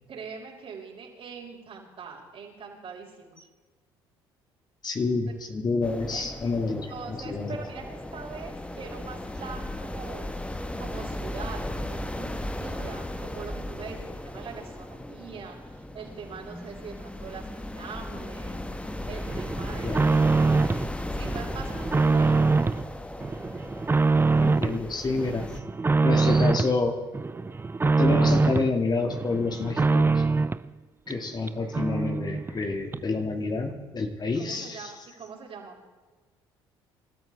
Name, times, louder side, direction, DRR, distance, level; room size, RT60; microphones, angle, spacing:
voice 1, 0.1-3.4 5.3-5.4 6.1-6.3 6.9-10.3 10.8-18.6 19.1-20.8 21.1-22.4 34.4-35.8, right 5 dB, 50° right, -2 dB, 5.4 m, -42 dB
voice 2, 4.8-7.6 19.8-20.1 24.4-25.5 26.0-27.0 28.0-30.2 31.1-34.9, left 3 dB, 35° left, 3 dB, 2.3 m, -28 dB
sound 1, 5.8-25.6, left 1 dB, 10° left, 1.4 m, -36 dB
sound 2, 19.3-20.9 21.2-22.8 23.2-24.8 25.2-26.8 27.1-28.7 29.1-30.7 31.1-31.2 31.5-31.6 31.7-32.6 32.9-33.0, right 3 dB, 20° right, 0.6 m, -24 dB
27.5 x 13.5 x 3.6 m, 1.3 s
hypercardioid pair, 60°, 12 cm